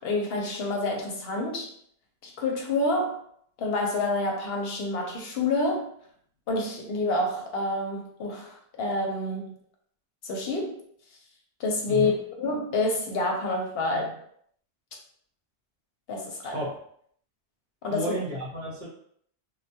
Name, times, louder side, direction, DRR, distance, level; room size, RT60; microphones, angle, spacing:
voice 1, 0.0-1.7 2.2-3.2 3.6-5.9 6.5-9.5 10.2-10.8 11.6-12.1 12.4-14.2 16.1-16.7 17.8-18.1, left 2 dB, 70° left, 1 dB, 0.8 m, -28 dB
voice 2, 11.9-12.2 16.4-16.8 17.9-18.9, equal, 50° right, -5 dB, 0.8 m, -32 dB
2.2 x 2.1 x 2.7 m, 0.65 s
omnidirectional pair, 1.1 m